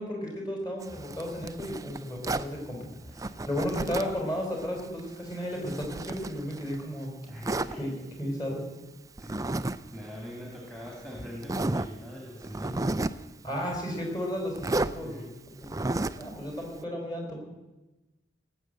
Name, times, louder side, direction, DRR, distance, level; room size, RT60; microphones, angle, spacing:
voice 1, 0.0-2.8 3.0-7.1 7.8-7.9 8.2-8.7 13.4-15.8 16.2-17.4, equal, 25° left, 0 dB, 4.7 m, -34 dB
Zipper (clothing), 0.8-2.5 3.2-4.2 4.6-6.8 7.4-7.7 9.2-9.8 10.0-10.2 10.9-11.0 11.4-11.9 12.4-13.2 14.6-14.9 15.6-16.3, right 2 dB, 20° right, 0.4 m, -32 dB
voice 2, 7.2-7.8 9.2-12.9 15.0-15.4, equal, 5° left, -2 dB, 2.6 m, -42 dB
18.5 x 8.0 x 7.7 m, 1.1 s
head